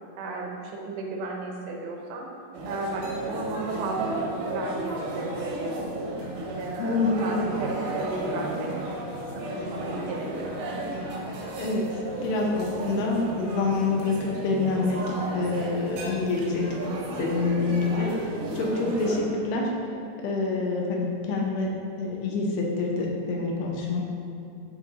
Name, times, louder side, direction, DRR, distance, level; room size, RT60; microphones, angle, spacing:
voice 1, 0.2-2.3 2.7-5.9 6.6-8.7 9.4-10.5 18.4-19.0, right 3 dB, 85° right, 0 dB, 3.1 m, -34 dB
sound 1, 2.5-19.2, right 1 dB, 70° right, 2.2 m, -34 dB
voice 2, 6.8-7.4 11.6-16.7 17.2-19.7 20.2-24.0, left 3 dB, 80° left, -1 dB, 2.7 m, -27 dB
12.0 x 4.6 x 2.5 m, 2.8 s
omnidirectional pair, 4.9 m